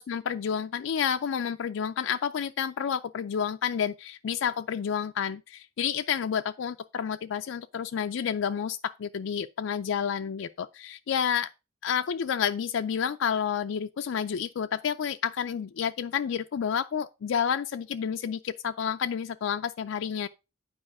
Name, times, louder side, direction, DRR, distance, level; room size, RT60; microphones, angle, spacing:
voice 1, 0.0-11.5 11.8-20.3, left 7 dB, 70° left, 0.4 m, -30 dB
8.7 x 4.8 x 4.7 m
head